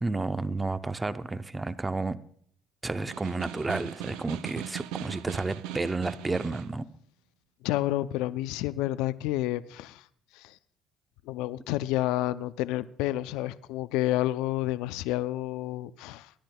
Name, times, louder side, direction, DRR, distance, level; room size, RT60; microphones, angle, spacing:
voice 1, 0.0-2.2 2.8-6.8, right 3 dB, 20° right, 12 dB, 0.6 m, -31 dB
Snare drum, 2.9-6.8, right 12 dB, 80° right, 0.4 m, -39 dB
voice 2, 7.6-10.0 10.3-10.6 11.3-16.3, left 15 dB, 80° left, 15 dB, 0.4 m, -30 dB
22.5 x 10.5 x 2.2 m, 0.63 s
hypercardioid pair, 65°, 0 cm